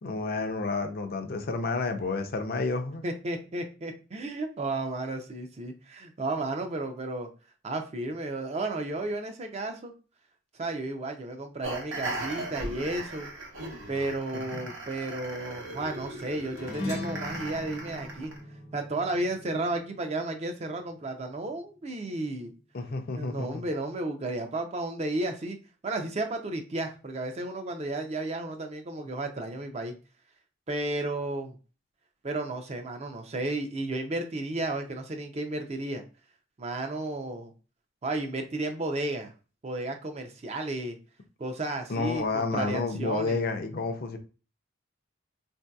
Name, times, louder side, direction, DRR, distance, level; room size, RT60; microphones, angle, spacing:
voice 1, 0.0-3.0 14.3-14.7 22.7-23.6 41.9-44.2, left 3 dB, 50° left, 0.4 m, -30 dB
voice 2, 3.0-7.3 7.6-9.9 10.5-13.3 13.9-18.3 18.7-22.5 23.2-25.6 25.8-29.9 30.7-31.6 32.2-36.0 36.6-37.5 38.0-39.3 39.6-41.0 41.4-43.4, right 2 dB, 30° right, 0.4 m, -33 dB
sound 1, 11.6-18.4, right 2 dB, 70° right, 0.8 m, -38 dB
sound 2, 16.6-21.3, left 2 dB, 85° left, 0.9 m, -39 dB
3.7 x 2.7 x 2.2 m
head